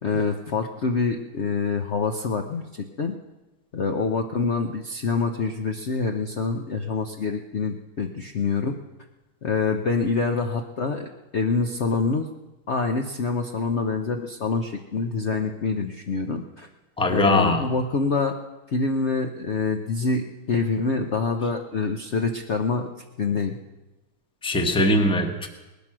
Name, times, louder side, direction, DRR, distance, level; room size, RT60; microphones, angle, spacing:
voice 1, 0.0-3.1 3.7-8.8 9.4-12.3 12.7-16.7 17.1-18.4 18.7-22.9 23.2-23.6, left 4 dB, 70° left, 4 dB, 0.6 m, -26 dB
voice 2, 17.0-17.7 24.4-25.5, left 1 dB, 5° left, 5 dB, 0.8 m, -21 dB
19.5 x 12.5 x 6.1 m, 1.1 s
omnidirectional pair, 2.4 m